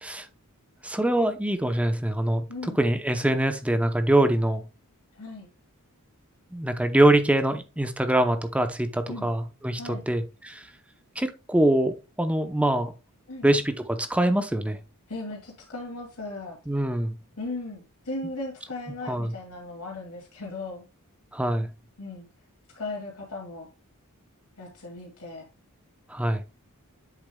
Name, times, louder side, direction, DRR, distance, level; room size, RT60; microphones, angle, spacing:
voice 1, 0.8-4.6 6.5-10.7 11.2-12.9 13.4-14.8 16.7-17.2 19.1-19.3 21.3-21.7 26.1-26.4, right 1 dB, 5° right, 0.6 m, -24 dB
voice 2, 2.5-2.8 5.1-5.5 9.1-9.3 9.7-10.1 13.3-13.5 15.1-16.6 17.4-20.8 22.0-22.3 22.8-23.7 24.6-25.5, left 2 dB, 80° left, 2.3 m, -37 dB
8.2 x 6.9 x 2.2 m
head